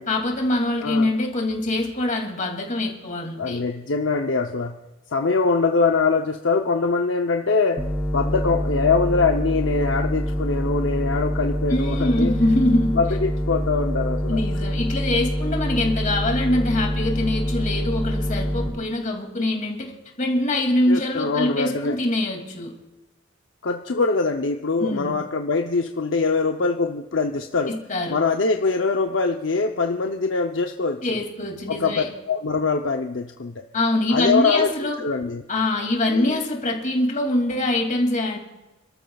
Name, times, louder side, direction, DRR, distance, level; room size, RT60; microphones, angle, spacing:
voice 1, 0.1-3.6 11.7-13.0 14.3-19.9 20.2-22.7 24.8-25.2 27.7-28.2 31.0-32.1 33.7-35.0 35.5-38.4, left 1 dB, 40° left, 1 dB, 2.5 m, -23 dB
voice 2, 3.4-4.8 5.1-7.8 8.1-12.3 12.9-14.4 20.9-22.0 23.6-27.7 28.1-31.2 31.7-33.6 34.1-35.4 36.1-36.4, left 4 dB, 65° left, 4 dB, 0.7 m, -23 dB
sound 1, 7.8-18.7, equal, 15° left, 2.4 m, -25 dB
28.5 x 13.0 x 2.4 m, 1.1 s
head